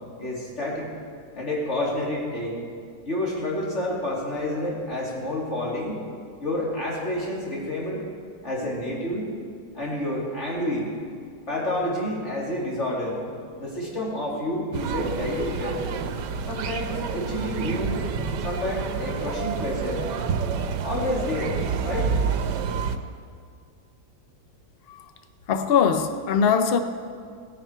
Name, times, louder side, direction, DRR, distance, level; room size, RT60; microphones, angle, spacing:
voice 1, 0.2-0.9 1.3-2.6 3.0-6.1 6.4-8.0 8.4-9.3 9.7-10.9 11.5-13.2 13.6-15.8 16.5-18.0 18.4-20.0 20.8-22.1, left 1 dB, 40° left, -4 dB, 2.9 m, -29 dB
sound 1, 14.7-23.0, right 6 dB, 85° right, 1.3 m, -28 dB
voice 2, 25.5-26.8, left 6 dB, 75° left, 8 dB, 0.5 m, -21 dB
17.5 x 10.0 x 4.6 m, 2.1 s
omnidirectional pair, 1.8 m